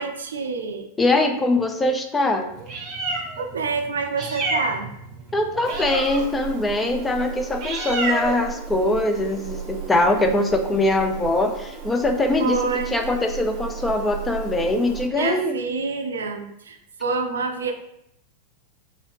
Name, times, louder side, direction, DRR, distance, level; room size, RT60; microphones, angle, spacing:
voice 1, 0.0-0.9 3.4-4.9 12.4-13.0 15.1-17.7, right 4 dB, 70° right, 5 dB, 0.3 m, -27 dB
voice 2, 1.0-2.5 5.3-15.6, left 2 dB, 10° left, 5 dB, 0.4 m, -22 dB
Meow, 2.5-15.1, right 4 dB, 35° right, 0.7 m, -32 dB
2.7 x 2.7 x 3.2 m, 0.79 s
figure-of-eight pair, 90°, 0 cm